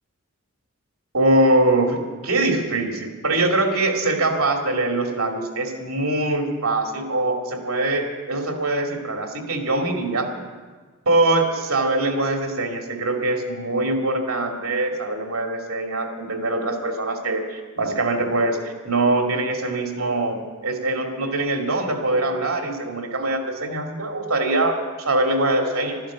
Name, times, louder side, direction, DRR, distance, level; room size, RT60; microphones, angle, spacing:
voice 1, 1.1-10.3 11.0-18.6 18.8-26.0, right 2 dB, 80° right, 2 dB, 2.5 m, -23 dB
12.5 x 11.5 x 8.4 m, 1.4 s
head